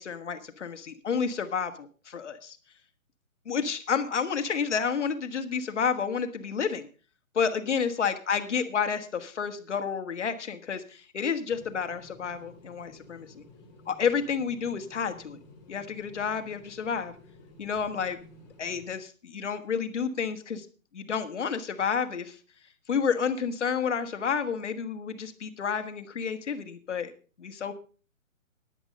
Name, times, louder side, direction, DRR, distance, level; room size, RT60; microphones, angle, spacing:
voice 1, 0.0-2.6 3.4-6.9 7.3-13.4 13.9-15.4 15.7-17.1 17.6-18.2 18.6-20.7 20.9-22.4 22.9-27.1 27.4-27.7, left 6 dB, 55° left, 7 dB, 1.6 m, -30 dB
sound 1, 11.5-18.9, left 2 dB, 20° left, 2.9 m, -53 dB
10.5 x 10.0 x 5.3 m, 0.37 s
hypercardioid pair, 175°, 41 cm